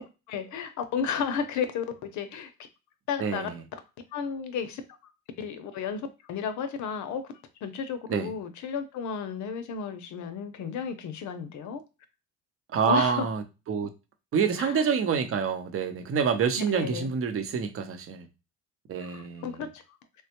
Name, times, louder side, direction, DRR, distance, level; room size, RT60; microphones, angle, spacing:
voice 1, 0.3-2.5 3.1-3.8 4.1-4.8 5.4-7.2 7.6-11.8 12.8-13.3 14.6-14.8 16.7-17.1 19.0-19.8, left 7 dB, 60° left, 0.6 m, -33 dB
voice 2, 3.2-3.5 8.1-8.3 12.7-13.9 14.3-18.3 18.9-19.6, right 6 dB, 40° right, 0.7 m, -27 dB
3.1 x 2.2 x 2.9 m
cardioid pair, 100°, 33 cm